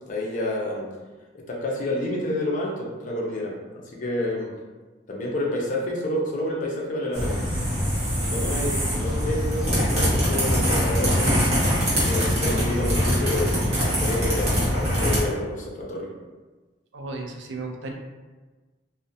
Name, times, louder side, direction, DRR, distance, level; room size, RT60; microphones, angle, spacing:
voice 1, 0.1-0.9 1.3-4.5 5.1-7.4 8.2-11.5 11.9-13.6 13.8-16.1, left 1 dB, 45° left, -2 dB, 0.5 m, -29 dB
sound 1, 7.1-15.2, equal, 35° right, 0.9 m, -23 dB
voice 2, 16.9-17.9, right 3 dB, 70° right, 3 dB, 0.3 m, -34 dB
2.4 x 2.1 x 2.6 m, 1.3 s
head